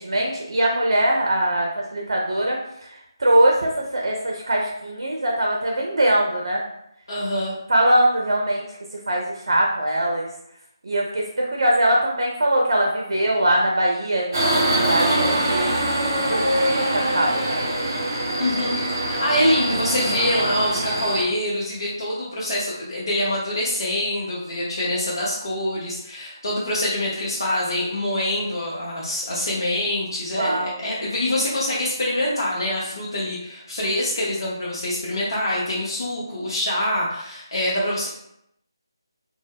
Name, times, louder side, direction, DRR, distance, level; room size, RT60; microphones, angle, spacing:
voice 1, 0.0-2.9 3.2-6.6 7.7-8.6 9.1-10.3 10.8-15.7 16.3-17.6 30.3-30.8, right 1 dB, 65° right, -1 dB, 0.5 m, -22 dB
voice 2, 7.1-7.5 18.4-18.8 19.1-38.1, left 1 dB, 60° left, -6 dB, 0.6 m, -25 dB
Subway metro underground, 14.3-21.2, right 1 dB, 45° right, 0.8 m, -23 dB
2.1 x 2.0 x 3.3 m, 0.78 s
figure-of-eight pair, 155°, 2 cm